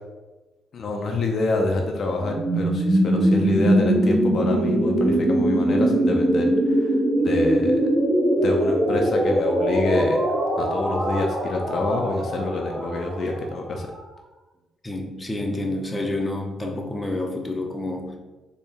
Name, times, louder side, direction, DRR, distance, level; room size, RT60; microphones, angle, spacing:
voice 1, 0.7-7.8 8.4-10.2 10.6-13.9, left 2 dB, 55° left, 2 dB, 0.5 m, -27 dB
sound 1, 2.2-14.0, right 1 dB, 30° right, 1.0 m, -22 dB
voice 2, 14.8-18.2, left 2 dB, 15° left, 1 dB, 0.6 m, -28 dB
4.0 x 2.2 x 3.7 m, 1.2 s
cardioid pair, 90°, 0 cm